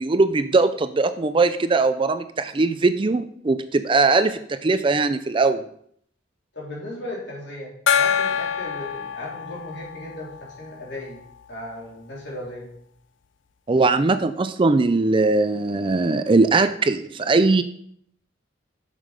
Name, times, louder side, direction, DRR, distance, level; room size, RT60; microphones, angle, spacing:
voice 1, 0.0-5.6 13.7-17.6, right 3 dB, 25° right, 11 dB, 0.4 m, -20 dB
voice 2, 6.5-11.2 11.5-12.7, left 1 dB, 70° left, -5 dB, 3.6 m, -36 dB
Gong, 7.9-11.1, left 7 dB, 85° left, 0.5 m, -25 dB
7.4 x 6.7 x 5.1 m, 0.67 s
head